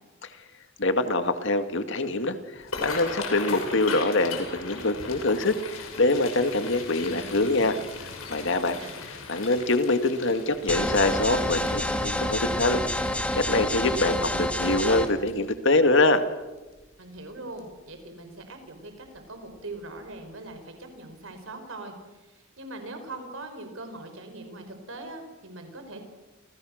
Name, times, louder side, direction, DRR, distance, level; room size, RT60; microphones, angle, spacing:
voice 1, 0.8-7.8 8.3-8.8 9.3-12.8 13.3-16.2, left 2 dB, 60° left, 8 dB, 2.2 m, -24 dB
sound 1, 2.6-15.7 16.2-16.4 16.8-17.2 17.6-17.7 19.0-19.2 19.5-19.6 20.1-20.2, left 4 dB, 85° left, 6.4 m, -39 dB
voice 2, 8.5-9.0 17.0-26.0, right 2 dB, 70° right, 6 dB, 5.2 m, -41 dB
sound 2, 10.7-15.1, left 1 dB, 5° left, 2.2 m, -28 dB
30.0 x 28.0 x 6.6 m, 1.2 s
head